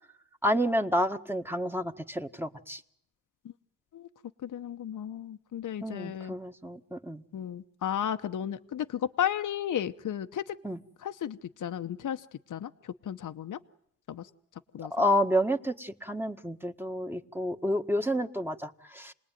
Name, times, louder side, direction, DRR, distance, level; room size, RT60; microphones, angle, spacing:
voice 1, 0.4-2.8 5.8-7.2 10.6-10.8 14.9-19.1, equal, 5° right, 5 dB, 1.6 m, -29 dB
voice 2, 4.4-6.3 7.3-10.6 11.0-13.6 14.1-14.3 14.7-14.9, left 9 dB, 75° left, 8 dB, 1.0 m, -34 dB
28.5 x 20.0 x 9.3 m, 0.72 s
cardioid pair, 75°, 32 cm